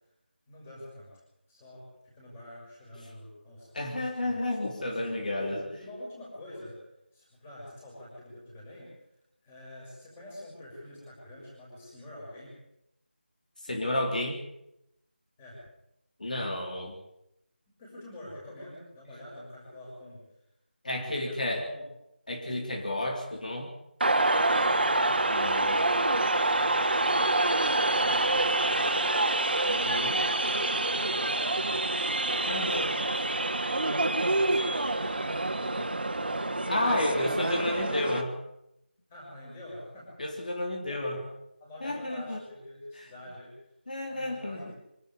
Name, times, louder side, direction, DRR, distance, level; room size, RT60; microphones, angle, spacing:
voice 1, 0.5-1.1 1.5-1.9 2.1-4.6 5.4-6.8 7.1-9.0 9.4-12.5 15.4-15.6 17.8-20.2 20.9-21.9 24.7-27.2 27.6-29.0 29.7-30.2 30.7-31.8 32.2-33.3 34.0-36.7 37.0-37.4 39.1-40.5 40.9-41.2 41.6-43.5 44.1-44.7, left 1 dB, 10° left, -5 dB, 6.3 m, -45 dB
voice 2, 3.7-5.6 13.6-14.4 16.2-16.9 20.8-21.7 22.3-23.7 25.3-25.8 29.6-30.2 32.5-32.8 36.7-38.3 40.2-41.2 41.8-42.4 43.0-43.1 43.9-44.6, left 1 dB, 45° left, 1 dB, 3.5 m, -31 dB
sound 1, 24.0-38.2, right 2 dB, 60° right, 2.4 m, -27 dB
25.0 x 12.5 x 9.9 m, 0.83 s
figure-of-eight pair, 180°, 6 cm